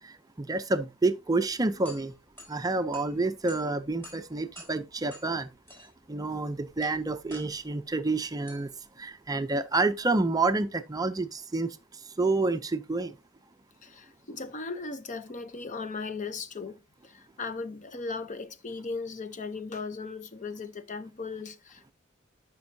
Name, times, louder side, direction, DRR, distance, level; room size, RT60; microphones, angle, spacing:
voice 1, 0.0-2.1 2.5-5.5 5.8-8.7 9.0-13.2, right 3 dB, 20° right, 0.5 m, -29 dB
sound 1, 1.5-10.5, equal, 10° left, 4.3 m, -52 dB
voice 2, 13.8-21.9, left 4 dB, 40° left, 0.7 m, -37 dB
12.0 x 5.2 x 2.7 m
head